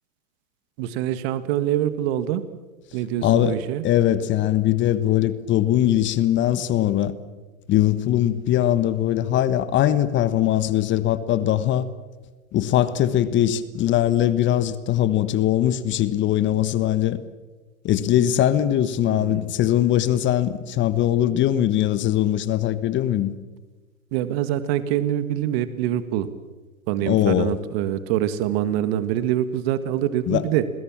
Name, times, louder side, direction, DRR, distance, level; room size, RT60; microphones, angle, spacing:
voice 1, 0.8-2.4 2.9-3.8 19.1-19.5 24.1-26.3 26.9-30.6, right 11 dB, 45° right, 1.8 m, -25 dB
voice 2, 3.2-3.6 3.8-7.1 7.7-11.9 12.5-17.2 17.8-23.3 27.1-27.5 30.3-30.4, left 12 dB, 25° left, 1.3 m, -21 dB
28.5 x 21.0 x 7.4 m
hypercardioid pair, 115°, 42 cm